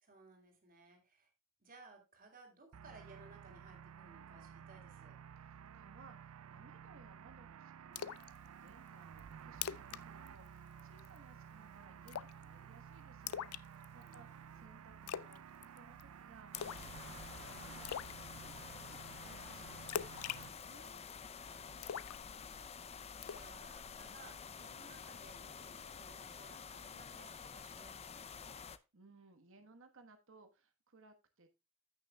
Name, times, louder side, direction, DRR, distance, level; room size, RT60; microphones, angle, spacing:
voice 1, 0.0-1.3 1.6-5.2 13.9-14.8 21.4-28.6, right 3 dB, 40° right, 3 dB, 3.1 m, -61 dB
sound 1, 2.7-20.5, right 8 dB, 80° right, 0.4 m, -54 dB
voice 2, 5.3-8.2 8.4-21.0 28.6-31.5, right 3 dB, 65° right, 7 dB, 1.3 m, -63 dB
Splash splatter, 8.0-8.3 8.7-8.8 9.2-9.3 9.5-10.0 10.3-10.5 10.8-11.2 12.1-12.4 13.3-14.1 15.1-15.4 15.6-16.0 16.5-16.9 17.2-17.3 17.8-18.1 19.9-21.2 21.8-22.7 23.2-23.5, left 9 dB, 85° left, 0.4 m, -42 dB
sound 2, 16.5-28.8, left 6 dB, 30° left, 0.5 m, -50 dB
15.5 x 6.4 x 2.3 m, 0.26 s
head